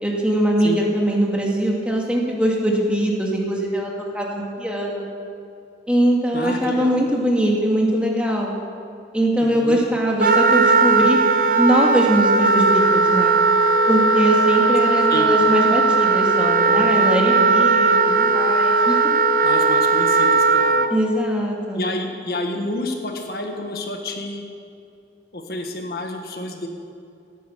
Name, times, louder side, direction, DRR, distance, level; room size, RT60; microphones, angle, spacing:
voice 1, 0.0-5.1 5.9-8.5 9.1-11.2 11.6-13.4 13.9-19.2 20.9-21.9, right 1 dB, 5° right, -2 dB, 2.0 m, -21 dB
voice 2, 6.3-6.9 9.4-9.8 15.1-15.3 19.4-20.8 21.7-24.4 25.3-26.7, left 1 dB, 60° left, 3 dB, 1.6 m, -29 dB
Wind instrument woodwind instrument, 10.2-20.9, right 3 dB, 50° right, 0.7 m, -17 dB
17.5 x 9.3 x 7.0 m, 2.6 s
head